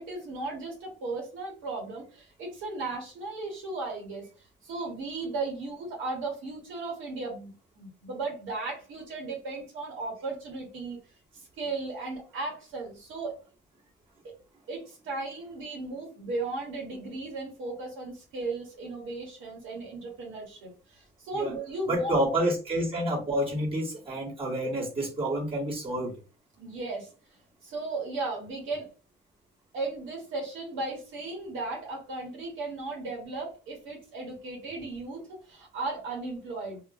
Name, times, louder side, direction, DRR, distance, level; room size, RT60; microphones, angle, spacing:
voice 1, 0.0-4.2 4.6-11.0 11.6-13.3 14.2-14.3 14.7-22.1 26.6-27.1 27.6-28.9 29.7-36.8, right 3 dB, 85° right, -1 dB, 1.4 m, -36 dB
voice 2, 21.9-26.1, right 1 dB, 30° right, -5 dB, 1.4 m, -28 dB
2.9 x 2.5 x 2.5 m, 0.33 s
cardioid pair, 90°, 20 cm